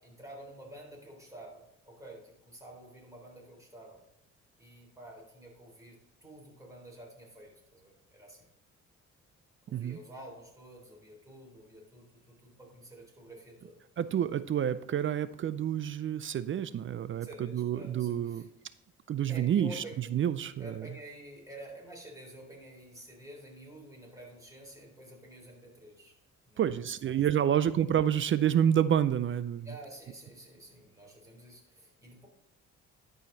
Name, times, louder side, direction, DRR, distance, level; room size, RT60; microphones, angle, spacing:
voice 1, 0.0-4.0 4.6-8.5 9.6-13.8 17.2-18.5 19.3-20.0 20.6-26.1 26.5-26.8 27.1-27.2 27.5-27.6 29.6-32.3, right 1 dB, 10° right, -1 dB, 3.6 m, -49 dB
voice 2, 14.0-18.4 19.1-20.9 26.6-29.7, right 9 dB, 40° right, 15 dB, 0.4 m, -29 dB
11.5 x 5.0 x 3.9 m, 0.81 s
cardioid pair, 90°, 30 cm